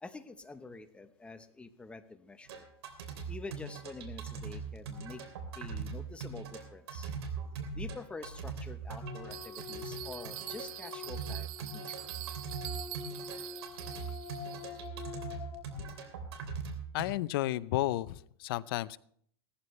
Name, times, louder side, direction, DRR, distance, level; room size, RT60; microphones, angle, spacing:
voice 1, 0.0-2.7 3.3-5.2 5.6-7.1 7.7-12.1 14.1-14.2, left 3 dB, 10° left, 9 dB, 1.0 m, -47 dB
sound 1, 2.5-17.1, right 5 dB, 80° right, 3.1 m, -41 dB
sound 2, 9.0-15.6, left 8 dB, 40° left, 1.9 m, -46 dB
Bell, 9.3-14.9, right 19 dB, 50° right, 0.6 m, -45 dB
voice 2, 16.9-19.0, left 16 dB, 60° left, 17 dB, 0.6 m, -33 dB
17.5 x 14.0 x 3.3 m, 0.62 s
supercardioid pair, 140°, 13 cm